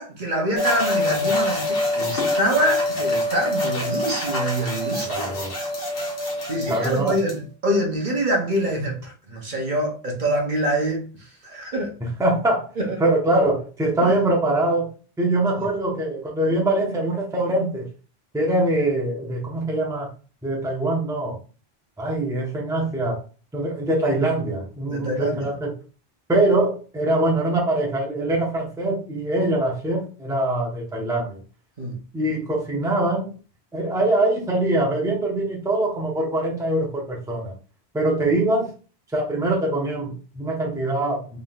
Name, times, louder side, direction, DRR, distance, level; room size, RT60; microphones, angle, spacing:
voice 1, 0.0-5.3 6.4-11.9 12.8-13.0 14.0-14.1 15.6-15.7 24.9-25.5 31.8-32.0, right 1 dB, 50° right, 1.0 m, -25 dB
sound 1, 0.6-7.3, left 2 dB, 65° left, 1.6 m, -25 dB
voice 2, 5.0-5.5 6.7-7.1 12.2-12.7 13.0-14.9 15.2-17.9 18.3-20.1 20.4-21.4 22.0-23.2 23.5-25.7 26.3-31.4 32.1-33.3 33.7-37.5 37.9-38.7 39.1-41.4, right 1 dB, 5° right, 0.8 m, -23 dB
3.9 x 3.6 x 2.4 m
omnidirectional pair, 1.0 m